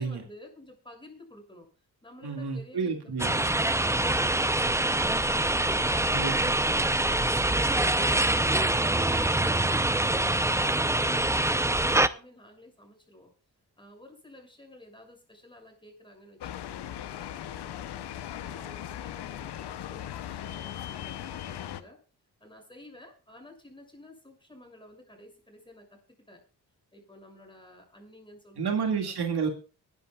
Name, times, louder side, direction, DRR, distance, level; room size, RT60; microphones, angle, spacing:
voice 1, 0.0-1.7 2.0-13.3 13.8-18.1 18.4-22.0 22.4-26.0 26.3-26.4 26.9-28.7 29.0-29.4, left 1 dB, 10° left, 2 dB, 6.6 m, -52 dB
voice 2, 2.2-3.4 6.1-6.5 28.6-29.5, right 5 dB, 75° right, 4 dB, 2.3 m, -30 dB
sound 1, 3.2-12.1, right 1 dB, 5° right, 0.6 m, -25 dB
sound 2, 16.4-21.8, left 11 dB, 85° left, 0.8 m, -38 dB
23.0 x 11.0 x 2.4 m, 0.34 s
cardioid pair, 65°, 40 cm